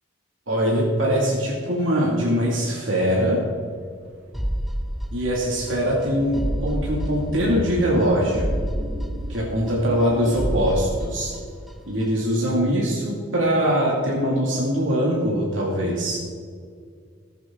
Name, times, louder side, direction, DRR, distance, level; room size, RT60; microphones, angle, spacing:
voice 1, 0.5-3.4 5.1-8.5 9.3-11.3 11.9-16.2, equal, 75° right, -4 dB, 2.4 m, -22 dB
sound 1, 3.5-12.5, equal, 90° right, 2.0 m, -36 dB
sound 2, 4.3-5.7 6.0-6.1 6.3-7.7 8.0-8.1 8.3-10.0 10.3-11.7 12.0-12.1, equal, ahead, 0.7 m, -29 dB
19.0 x 8.2 x 3.8 m, 2.1 s
head